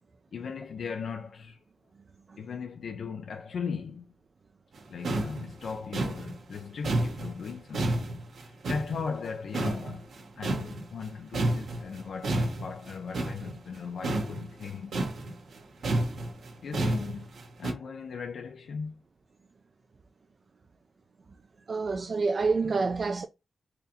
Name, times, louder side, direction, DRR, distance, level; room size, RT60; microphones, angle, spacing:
voice 1, 0.3-1.6 2.4-4.1 4.9-8.2 8.4-10.1 10.4-15.1 16.6-17.3 17.6-19.0, left 6 dB, 75° left, 0.4 m, -38 dB
sound 1, 4.8-4.9 5.0-9.3 9.5-11.1 11.3-17.7, right 1 dB, 80° right, 1.1 m, -31 dB
voice 2, 21.7-23.3, right 4 dB, 45° right, 0.3 m, -27 dB
4.0 x 2.7 x 2.7 m
wide cardioid pair, 125°, 0 cm